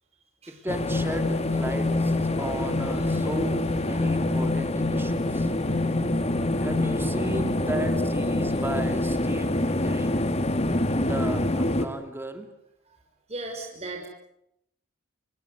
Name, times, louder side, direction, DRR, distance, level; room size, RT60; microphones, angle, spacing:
voice 1, 0.5-5.5 6.6-10.2 11.0-12.5, right 1 dB, 10° right, 8 dB, 2.6 m, -35 dB
sound 1, 0.7-11.9, left 1 dB, 30° left, 2.1 m, -25 dB
voice 2, 13.3-14.1, right 2 dB, 35° right, 1 dB, 6.2 m, -36 dB
27.5 x 24.0 x 8.1 m, 0.78 s
head